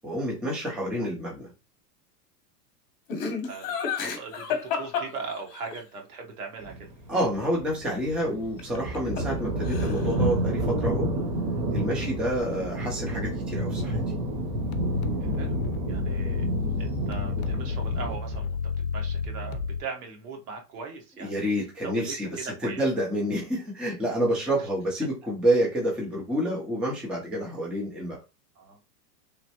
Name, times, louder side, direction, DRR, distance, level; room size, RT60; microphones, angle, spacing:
voice 1, 0.0-1.5 7.1-11.1 11.7-14.0 21.2-28.2, equal, ahead, -3 dB, 0.4 m, -28 dB
Laughter, 3.1-5.8 8.6-9.4 9.6-10.2, left 6 dB, 40° left, 0.9 m, -31 dB
voice 2, 4.0-6.7 15.3-15.6 15.9-16.5 16.8-18.6 18.9-21.4 21.8-22.8 28.6-28.8, right 4 dB, 65° right, 2 dB, 1.2 m, -39 dB
sound 1, 6.6-18.2, right 1 dB, 35° right, 0.9 m, -30 dB
sound 2, 14.5-19.8, left 5 dB, 60° left, 0.5 m, -31 dB
3.1 x 2.1 x 2.8 m, 0.27 s
hypercardioid pair, 120°, 49 cm